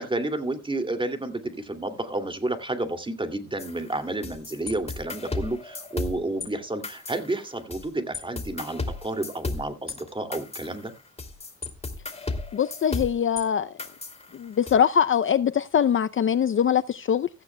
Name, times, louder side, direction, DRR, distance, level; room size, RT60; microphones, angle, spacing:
voice 1, 0.0-10.9, right 2 dB, 15° right, 2.6 m, -31 dB
sound 1, 3.6-6.5 6.8-7.9 8.1-13.4 13.8-14.7, left 3 dB, 20° left, 2.6 m, -34 dB
voice 2, 12.5-13.7 14.3-17.3, left 8 dB, 40° left, 0.6 m, -22 dB
16.0 x 14.5 x 2.3 m
cardioid pair, 90°, 30 cm